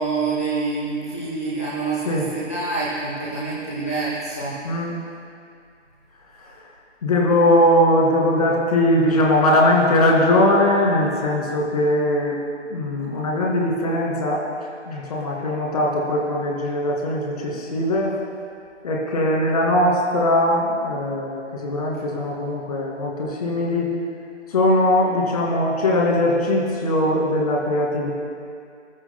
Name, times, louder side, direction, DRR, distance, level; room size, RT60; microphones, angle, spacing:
voice 1, 0.0-4.6, right 3 dB, 15° left, -8 dB, 0.6 m, -26 dB
voice 2, 7.0-12.4 12.7-14.5 14.9-18.2 18.8-23.9 24.5-28.1, left 1 dB, 30° left, -2 dB, 2.5 m, -20 dB
29.0 x 14.0 x 2.3 m, 2.4 s
figure-of-eight pair, 160°, 37 cm